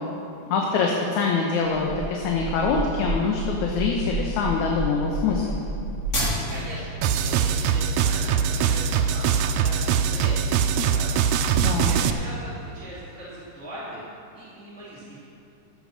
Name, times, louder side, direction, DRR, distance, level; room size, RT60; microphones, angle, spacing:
voice 1, 0.5-5.6 11.6-11.9, left 5 dB, 75° left, 0 dB, 2.3 m, -24 dB
sound 1, 1.6-6.8, right 2 dB, 30° left, 3.5 m, -30 dB
voice 2, 6.5-11.4 11.9-14.1 14.3-15.2, right 1 dB, 5° left, -10 dB, 2.6 m, -40 dB
sound 2, 7.0-12.1, right 7 dB, 80° right, 1.8 m, -22 dB
13.5 x 7.8 x 6.4 m, 2.6 s
omnidirectional pair, 3.6 m